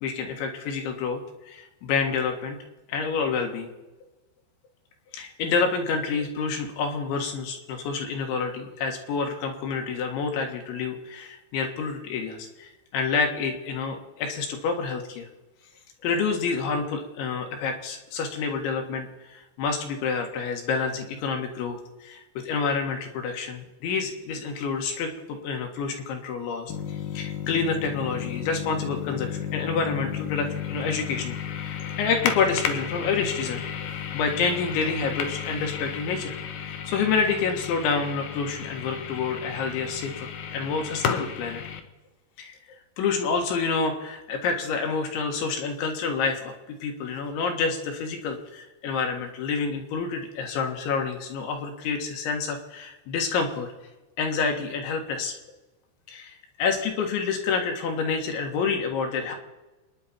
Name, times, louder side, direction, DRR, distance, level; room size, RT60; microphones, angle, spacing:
voice 1, 0.0-1.2 1.5-2.6 2.9-3.7 5.1-15.3 16.0-33.6 34.1-36.4 36.6-40.3 40.5-41.6 42.4-42.6 43.0-46.5 46.8-53.7 54.2-55.4 56.1-59.4, left 5 dB, 70° left, 3 dB, 3.8 m, -28 dB
sound 1, 26.7-41.8, left 8 dB, 90° left, 1.8 m, -33 dB
27.5 x 10.5 x 4.4 m, 1.1 s
omnidirectional pair, 5.8 m